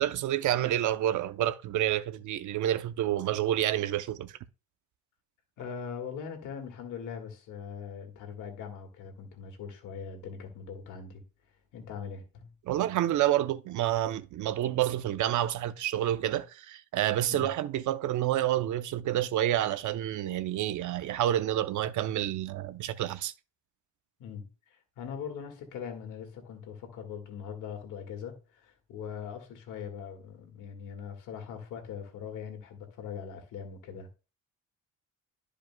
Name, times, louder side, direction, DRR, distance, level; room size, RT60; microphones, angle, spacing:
voice 1, 0.0-4.3 12.7-23.3, right 12 dB, 75° right, 0.7 m, -29 dB
voice 2, 5.6-11.2 11.7-12.5 17.3-17.5 24.2-34.2, left 7 dB, 90° left, 1.9 m, -41 dB
12.5 x 5.0 x 2.2 m
cardioid pair, 90°, 30 cm